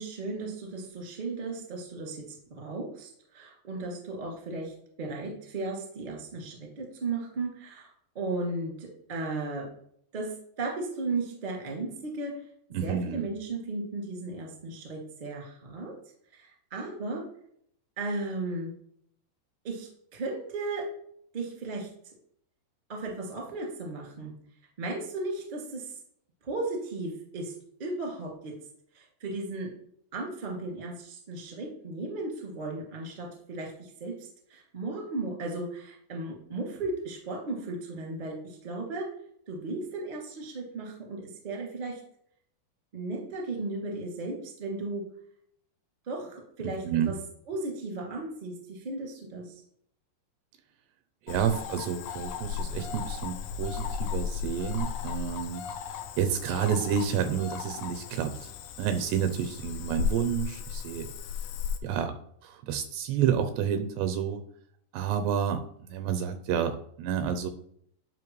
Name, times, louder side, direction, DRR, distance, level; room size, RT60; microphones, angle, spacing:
voice 1, 0.0-2.2 2.6-9.7 10.1-10.3 10.6-12.3 12.8-15.9 16.3-17.2 18.0-18.7 19.6-20.8 21.3-21.9 22.9-24.3 24.8-25.9 26.4-27.5 27.8-28.5 28.9-29.7 30.1-39.0 39.5-42.0 42.9-45.0 46.0-47.1 47.5-49.5, right 2 dB, 20° right, -2 dB, 1.3 m, -35 dB
voice 2, 12.7-13.3 46.6-47.1 51.3-58.5 58.8-61.1 61.8-62.1 62.4-64.4 64.9-67.5, right 8 dB, 80° right, 8 dB, 2.6 m, -30 dB
Cricket / Frog, 51.3-61.8, left 7 dB, 80° left, 2.7 m, -35 dB
11.0 x 5.4 x 3.2 m, 0.67 s
omnidirectional pair, 5.1 m